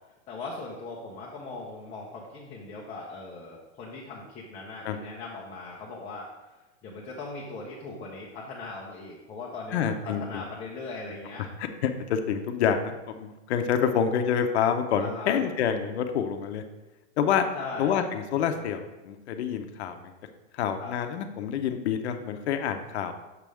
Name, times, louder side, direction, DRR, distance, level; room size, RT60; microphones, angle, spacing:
voice 1, 0.3-6.3 6.8-11.4 15.0-15.4 17.5-18.0 18.6-18.7 20.8-20.9, left 3 dB, 15° left, -4 dB, 0.6 m, -39 dB
voice 2, 9.7-10.4 11.6-16.6 17.2-17.5 17.8-20.1 20.6-23.1, left 8 dB, 60° left, 7 dB, 0.8 m, -27 dB
6.7 x 3.5 x 6.2 m, 1.1 s
supercardioid pair, 160°, 37 cm